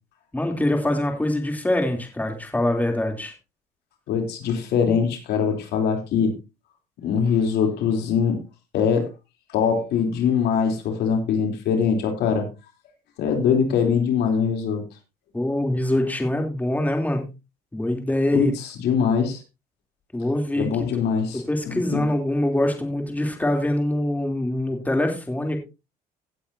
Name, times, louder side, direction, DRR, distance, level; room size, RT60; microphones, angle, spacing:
voice 1, 0.3-3.3 15.3-17.3 17.7-18.5 20.1-20.7 21.3-25.6, left 1 dB, 10° left, 3.2 m, -24 dB
voice 2, 4.1-6.3 7.0-8.4 8.7-9.1 9.5-12.5 13.2-14.9 18.3-18.5 18.8-19.4 20.6-22.0, left 6 dB, 75° left, 3.4 m, -22 dB
17.0 x 8.5 x 2.8 m
cardioid pair, 110°, 17 cm